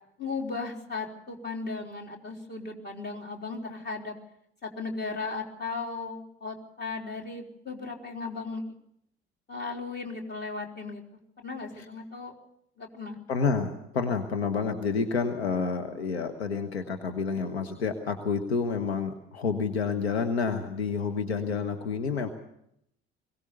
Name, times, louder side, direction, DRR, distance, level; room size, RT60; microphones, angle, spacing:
voice 1, 0.2-4.1 4.6-8.6 9.5-11.0 11.4-12.3 12.8-13.2, left 4 dB, 30° left, 0 dB, 3.9 m, -36 dB
voice 2, 13.3-22.3, left 5 dB, 80° left, 7 dB, 1.2 m, -29 dB
21.5 x 17.5 x 6.9 m, 0.76 s
figure-of-eight pair, 55°, 31 cm